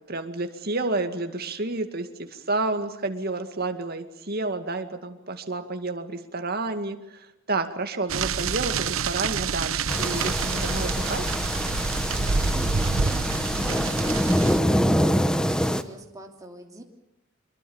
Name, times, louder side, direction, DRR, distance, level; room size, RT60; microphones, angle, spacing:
voice 1, 0.1-11.3, right 3 dB, 50° right, 7 dB, 2.2 m, -30 dB
sound 1, 8.1-14.6, right 5 dB, 75° right, 0.9 m, -27 dB
sound 2, 9.9-15.8, equal, 5° left, 1.0 m, -25 dB
voice 2, 12.5-16.8, right 1 dB, 15° right, 2 dB, 2.9 m, -43 dB
25.0 x 22.5 x 7.2 m, 0.86 s
head